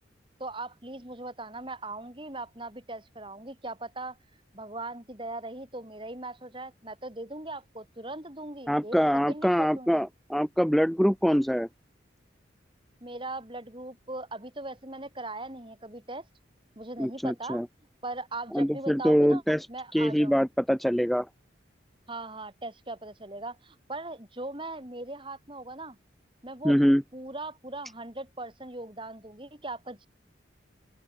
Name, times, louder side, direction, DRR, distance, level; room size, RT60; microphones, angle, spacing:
voice 1, 0.4-4.2 4.5-9.0 9.3-10.1 13.0-16.2 16.7-17.6 18.0-20.5 22.1-26.0 26.4-26.7 27.1-30.1, right 2 dB, 25° right, 3.4 m, -39 dB
voice 2, 8.7-11.7 17.0-17.7 18.5-19.7 19.9-21.3 26.6-27.0, equal, ahead, 0.3 m, -24 dB
open air
head